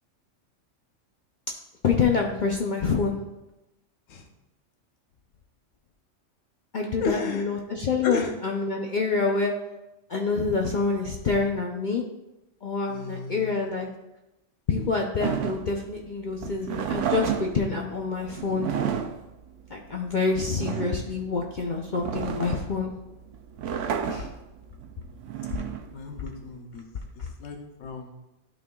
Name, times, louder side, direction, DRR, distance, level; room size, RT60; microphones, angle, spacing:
voice 1, 1.8-3.2 6.7-9.5 10.1-12.0 12.6-13.9 14.7-18.7 19.7-22.9, left 4 dB, 50° left, 0 dB, 0.6 m, -26 dB
voice 2, 7.0-7.5 8.0-8.3 12.9-13.7 14.7-14.9 24.1-24.3 25.9-26.9 27.1-28.1, left 4 dB, 85° left, 3 dB, 1.2 m, -34 dB
sound 1, 15.2-26.6, right 8 dB, 75° right, 0.9 m, -32 dB
12.0 x 4.3 x 2.3 m, 0.96 s
omnidirectional pair, 1.3 m